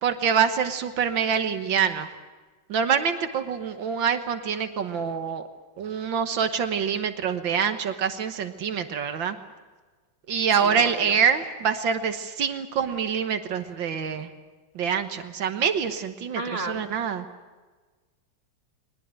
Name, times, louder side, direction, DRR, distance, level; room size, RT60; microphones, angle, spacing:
voice 1, 0.0-2.1 2.7-5.4 5.8-9.4 10.3-14.3 14.8-17.3, right 7 dB, 80° right, 8 dB, 2.0 m, -25 dB
voice 2, 10.6-11.2 16.4-16.9, right 2 dB, 30° right, 5 dB, 2.0 m, -33 dB
22.5 x 20.0 x 9.1 m, 1.3 s
omnidirectional pair, 2.1 m